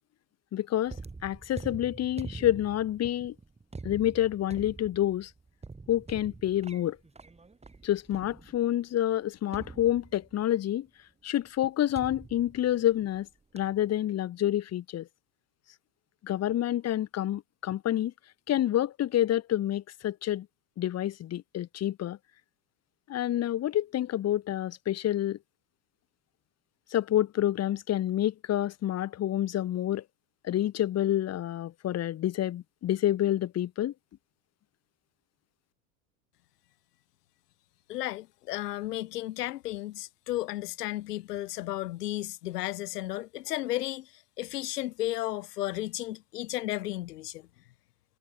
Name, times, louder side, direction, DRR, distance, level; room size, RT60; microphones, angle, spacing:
voice 1, 0.5-1.0 1.2-3.3 3.8-5.3 5.9-7.0 7.8-10.9 11.2-13.3 13.5-15.1 16.2-18.1 18.5-20.5 20.8-22.2 23.1-25.4 26.9-30.0 30.4-33.9, left 12 dB, 35° left, 1.2 m, -28 dB
sound 1, 0.9-8.8 9.5-10.5 11.9-13.2 13.6-13.9, right 3 dB, 15° right, 5.2 m, -45 dB
voice 2, 37.9-47.5, left 15 dB, 85° left, 3.3 m, -34 dB
supercardioid pair, 105°, 46 cm